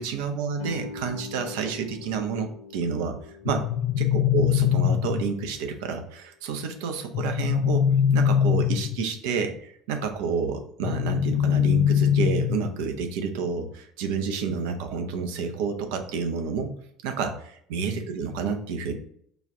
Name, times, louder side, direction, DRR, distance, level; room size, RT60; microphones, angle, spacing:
voice 1, 0.0-3.7 4.0-7.8 8.1-16.8 17.0-18.9, right 5 dB, 65° right, 5 dB, 0.6 m, -29 dB
Guitar, 0.6-5.9, left 4 dB, 85° left, 0.7 m, -43 dB
sound 1, 3.4-5.5 7.1-9.2 10.8-12.8, left 9 dB, 45° left, 0.4 m, -23 dB
5.0 x 2.4 x 3.7 m, 0.66 s
figure-of-eight pair, 65°, 0 cm